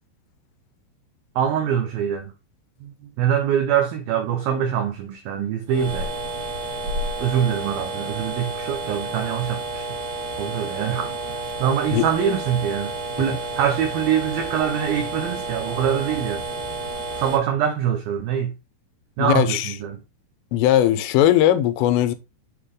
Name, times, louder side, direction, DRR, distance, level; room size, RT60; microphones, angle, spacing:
voice 1, 1.4-2.3 2.8-6.1 7.2-9.8 10.4-11.2 11.6-12.9 13.2-16.4 17.2-18.5 19.2-20.0, right 8 dB, 85° right, 2.1 m, -24 dB
sound 1, 5.7-17.4, right 2 dB, 45° right, 2.6 m, -30 dB
voice 2, 19.2-19.8 20.5-22.2, left 12 dB, 90° left, 3.4 m, -18 dB
7.5 x 6.5 x 3.7 m
omnidirectional pair, 5.6 m